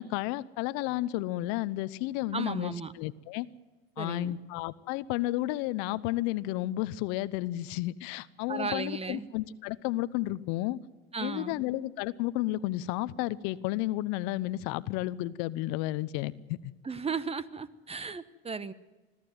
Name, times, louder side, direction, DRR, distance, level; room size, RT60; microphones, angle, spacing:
voice 1, 0.0-3.5 4.0-10.8 11.2-16.7, left 16 dB, 65° left, 17 dB, 0.9 m, -32 dB
voice 2, 2.3-2.9 4.0-4.4 8.5-9.3 11.1-11.6 16.8-18.7, right 5 dB, 20° right, 16 dB, 1.2 m, -35 dB
21.5 x 14.5 x 9.3 m, 1.2 s
hypercardioid pair, 85°, 30 cm